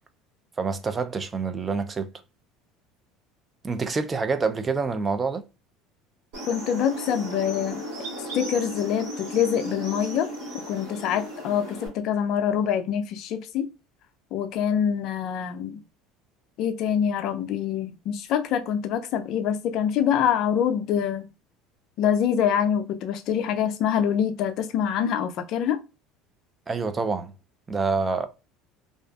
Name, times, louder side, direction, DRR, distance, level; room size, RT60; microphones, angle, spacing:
voice 1, 0.6-2.1 3.6-5.4 26.7-27.3 27.7-28.3, right 4 dB, 25° right, 0.4 m, -27 dB
sound 1, 6.3-11.9, equal, 80° right, 1.2 m, -35 dB
voice 2, 6.5-7.8 8.3-10.3 10.7-13.7 14.3-15.8 16.6-21.3 22.0-25.8, left 8 dB, 60° left, 0.4 m, -25 dB
2.5 x 2.3 x 2.3 m
supercardioid pair, 85°, 0 cm